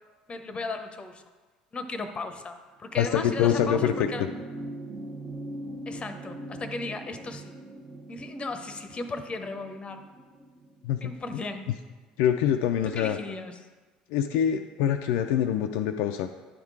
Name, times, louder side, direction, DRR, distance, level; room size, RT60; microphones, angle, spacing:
voice 1, 0.3-1.2 1.7-4.3 5.9-7.5 8.1-10.0 11.0-11.7 12.8-13.6, left 3 dB, 25° left, 8 dB, 0.8 m, -36 dB
sound 1, 2.9-11.6 12.8-12.9, right 2 dB, 30° right, 0.9 m, -40 dB
voice 2, 3.0-4.1 10.8-11.4 12.2-13.2 14.1-16.3, left 9 dB, 65° left, 5 dB, 0.3 m, -25 dB
10.0 x 3.7 x 4.7 m, 1.3 s
figure-of-eight pair, 65°, 4 cm